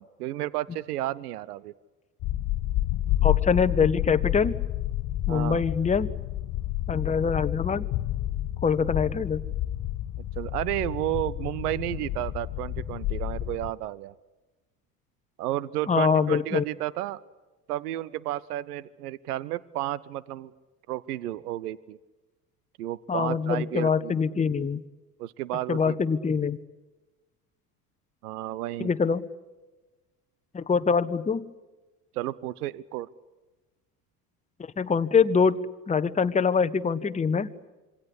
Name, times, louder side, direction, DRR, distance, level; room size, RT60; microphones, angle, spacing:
voice 1, 0.0-1.7 5.3-5.6 10.4-14.1 15.4-17.2 17.7-20.5 20.9-22.0 22.8-24.1 25.2-25.9 28.2-28.9 32.1-33.1, right 14 dB, 75° right, 21 dB, 0.9 m, -32 dB
sound 1, 2.2-13.7, left 14 dB, 50° left, 1.2 m, -30 dB
voice 2, 3.2-4.6 5.3-6.1 6.9-7.9 8.6-9.4 15.9-16.6 23.1-24.8 25.7-26.6 28.8-29.3 30.5-31.5 34.6-37.5, left 5 dB, 15° left, 10 dB, 1.1 m, -24 dB
27.0 x 23.5 x 8.5 m, 1.1 s
hypercardioid pair, 65°, 46 cm